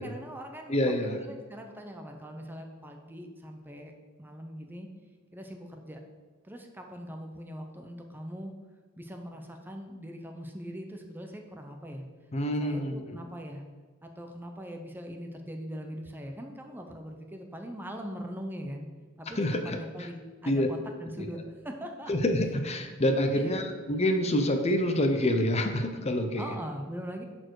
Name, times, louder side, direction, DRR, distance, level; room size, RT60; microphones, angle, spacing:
voice 1, 0.0-0.8 1.0-3.9 4.2-4.9 5.3-6.0 6.4-8.5 9.0-12.0 12.6-13.6 14.0-18.9 19.2-22.1 23.3-23.7 26.4-27.2, equal, 10° right, 4 dB, 0.7 m, -41 dB
voice 2, 0.7-1.2 12.3-13.2 19.4-19.8 20.5-20.7 21.2-21.3 22.1-26.4, left 1 dB, 30° left, 5 dB, 0.7 m, -27 dB
11.0 x 4.4 x 4.7 m, 1.4 s
head